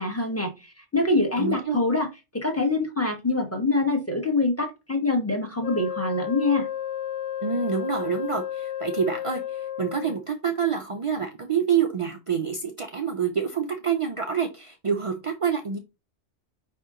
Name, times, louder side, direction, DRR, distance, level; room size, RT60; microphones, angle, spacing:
voice 1, 0.0-2.1 2.3-6.7, left 2 dB, 15° left, 1 dB, 0.9 m, -25 dB
voice 2, 1.4-1.8 7.4-15.8, right 7 dB, 60° right, 4 dB, 0.3 m, -27 dB
Wind instrument woodwind instrument, 5.6-10.2, left 11 dB, 80° left, 1.0 m, -32 dB
5.1 x 2.8 x 3.6 m, 0.26 s
omnidirectional pair, 1.2 m